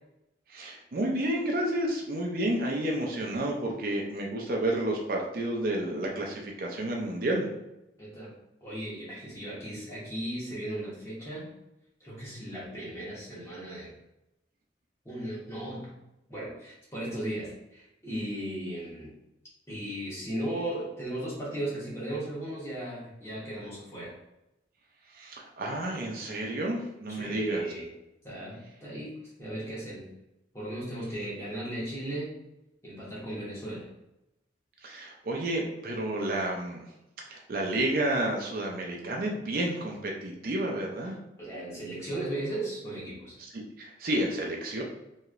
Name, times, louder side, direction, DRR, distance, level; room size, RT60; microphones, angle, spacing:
voice 1, 0.5-7.5 25.1-27.6 34.8-36.8 37.2-41.2 43.5-44.8, right 1 dB, 50° right, 0 dB, 0.4 m, -30 dB
voice 2, 8.0-8.3 8.6-11.5 12.0-13.9 15.0-15.9 16.3-19.1 19.7-24.1 27.1-27.9 28.2-30.0 30.5-32.3 32.8-33.9 41.4-43.4, right 1 dB, 15° left, -7 dB, 1.1 m, -36 dB
3.0 x 2.7 x 2.4 m, 0.90 s
head